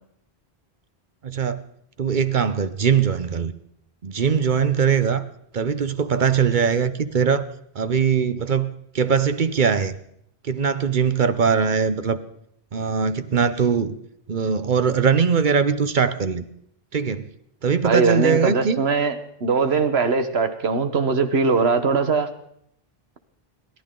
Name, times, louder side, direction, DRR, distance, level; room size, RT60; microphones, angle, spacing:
voice 1, 1.2-1.6 2.0-3.5 4.0-5.2 5.5-7.4 7.7-9.9 10.4-12.2 12.7-14.0 14.3-16.4 16.9-17.3 17.6-18.8, right 6 dB, 50° right, 12 dB, 0.9 m, -21 dB
voice 2, 17.8-19.1 19.4-22.3, right 4 dB, 80° right, 9 dB, 1.5 m, -21 dB
28.5 x 12.0 x 3.8 m, 0.70 s
omnidirectional pair, 1.0 m